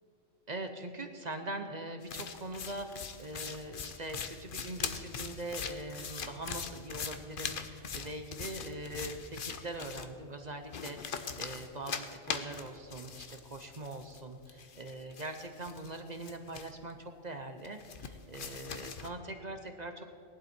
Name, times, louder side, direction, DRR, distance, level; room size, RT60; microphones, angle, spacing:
voice 1, 0.5-20.0, right 2 dB, 40° right, 6 dB, 0.8 m, -42 dB
sound 1, 2.0-10.1 10.6-14.2 14.5-16.9 17.6-19.1, left 6 dB, 50° left, 0.9 m, -41 dB
18.0 x 11.5 x 4.4 m, 2.6 s
omnidirectional pair, 1.3 m